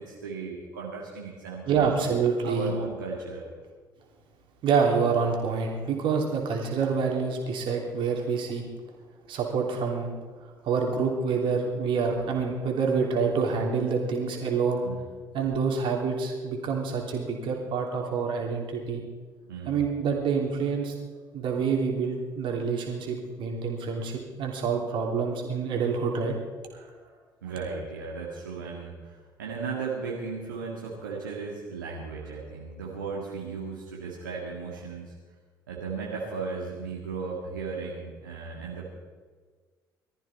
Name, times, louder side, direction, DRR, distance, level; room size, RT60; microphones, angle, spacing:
voice 1, 0.0-2.0 2.4-3.4 14.8-15.0 19.5-19.8 23.9-24.1 26.7-35.1 35.7-38.9, right 4 dB, 75° right, -4 dB, 2.0 m, -36 dB
voice 2, 1.7-2.7 4.6-8.6 9.3-10.1 10.6-14.8 15.3-19.0 19.7-20.9 21.3-26.3, right 5 dB, 50° right, 1 dB, 3.2 m, -27 dB
19.5 x 14.0 x 4.3 m, 1.5 s
figure-of-eight pair, 55°, 11 cm